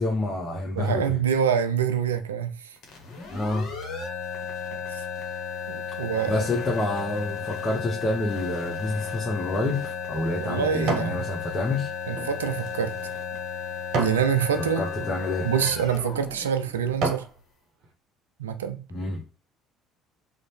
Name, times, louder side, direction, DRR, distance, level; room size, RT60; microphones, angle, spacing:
voice 1, 0.0-1.2 3.3-4.0 6.3-11.9 14.8-15.5 18.9-19.2, left 2 dB, 30° left, 0.7 m, -28 dB
voice 2, 0.7-2.8 4.9-5.0 5.7-6.4 10.4-11.2 12.1-12.9 14.0-14.8 15.4-17.2 18.4-18.8, right 8 dB, 80° right, 0.3 m, -26 dB
sound 1, 2.8-17.4, left 7 dB, 55° left, 0.8 m, -34 dB
sound 2, 9.4-11.2 11.7-14.3 14.9-15.1 15.8-16.0 16.5-17.4 17.8-17.9, right 3 dB, 60° right, 0.7 m, -32 dB
2.6 x 2.0 x 3.1 m
hypercardioid pair, 60°, 0 cm